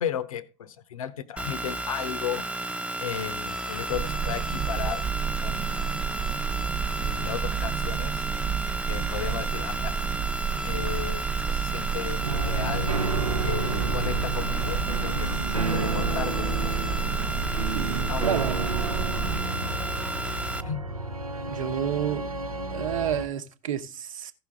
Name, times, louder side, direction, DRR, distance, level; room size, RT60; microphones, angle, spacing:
voice 1, 0.0-2.4 3.0-5.1 5.4-5.9 7.0-8.3 8.9-9.9 10.6-13.0 13.4-15.3 15.7-16.8 18.1-18.3 20.6-20.9, left 9 dB, 75° left, 0.7 m, -34 dB
sound 1, 1.4-20.6, right 1 dB, 5° right, 0.6 m, -33 dB
sound 2, 3.9-19.4, right 8 dB, 35° right, 0.8 m, -31 dB
sound 3, 12.2-23.3, right 2 dB, 90° right, 0.6 m, -31 dB
voice 2, 17.7-18.7 21.5-22.3 22.7-24.3, right 9 dB, 70° right, 1.0 m, -30 dB
15.5 x 6.0 x 3.5 m
figure-of-eight pair, 65°, 18 cm